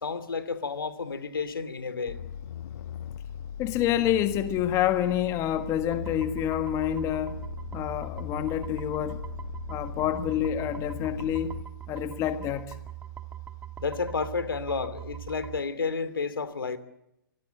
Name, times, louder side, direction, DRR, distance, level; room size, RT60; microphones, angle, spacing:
voice 1, 0.0-2.2 13.8-16.8, left 4 dB, 75° left, 14 dB, 2.6 m, -31 dB
sound 1, 2.1-11.6, left 8 dB, 60° left, 1.0 m, -39 dB
voice 2, 3.6-7.4 7.7-9.2 9.7-11.5 11.9-12.8, left 11 dB, 25° left, 10 dB, 1.5 m, -28 dB
sound 2, 5.9-15.6, right 12 dB, 10° right, 1.9 m, -41 dB
25.5 x 18.5 x 9.1 m, 0.84 s
figure-of-eight pair, 125°, 12 cm